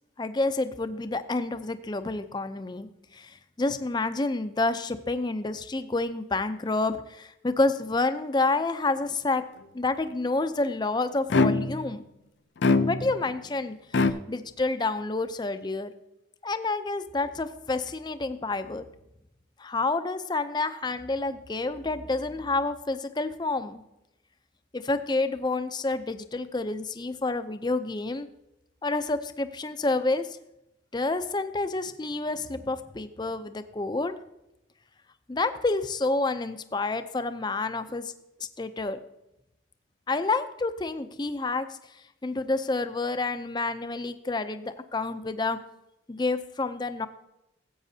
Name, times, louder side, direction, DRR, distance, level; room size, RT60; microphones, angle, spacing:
voice 1, 0.2-9.4 9.7-12.0 12.8-15.9 16.4-18.8 19.6-23.8 24.7-28.3 28.8-30.4 30.9-34.1 35.3-38.1 38.6-39.0 40.1-41.8 42.2-45.6 46.1-47.1, left 3 dB, 25° left, 10 dB, 0.5 m, -29 dB
sound 1, 11.3-11.9 12.6-13.3 13.9-14.1, left 3 dB, 75° left, 0.5 m, -22 dB
16.0 x 8.2 x 2.7 m, 0.87 s
head